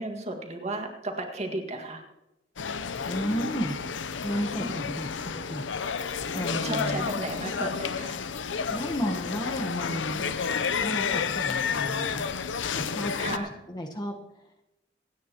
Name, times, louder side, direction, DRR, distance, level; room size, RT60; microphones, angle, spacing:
voice 1, 0.0-2.0 4.6-5.1 6.6-8.2 13.2-13.5, right 2 dB, 35° right, 3 dB, 1.8 m, -34 dB
sound 1, 2.6-13.4, left 6 dB, 85° left, 0.6 m, -31 dB
voice 2, 3.1-3.8 4.2-5.6 6.3-7.1 8.7-10.3 10.6-14.1, equal, 25° left, 2 dB, 1.2 m, -33 dB
27.5 x 9.4 x 3.0 m, 0.94 s
head